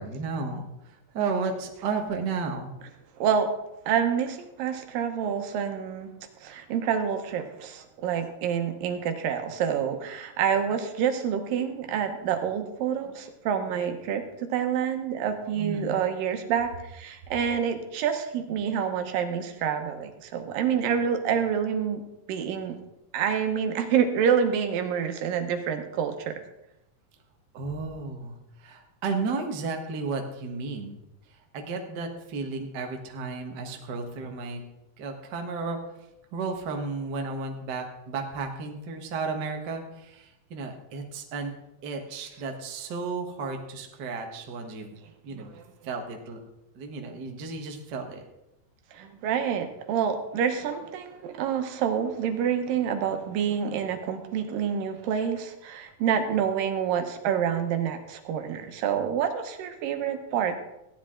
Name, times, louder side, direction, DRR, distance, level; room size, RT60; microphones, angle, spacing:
voice 1, 0.0-2.7 15.6-16.0 27.5-31.0 31.5-34.6 35.0-35.8 36.3-41.5 41.8-45.0 45.2-45.5 45.8-46.4 46.7-48.2, right 4 dB, 55° right, 3 dB, 1.2 m, -33 dB
voice 2, 3.2-3.5 3.9-6.1 6.4-22.0 22.3-22.8 23.1-26.3 45.3-45.6 48.9-60.6, right 8 dB, 80° right, 6 dB, 2.7 m, -27 dB
15.5 x 10.0 x 3.7 m, 0.88 s
omnidirectional pair, 4.0 m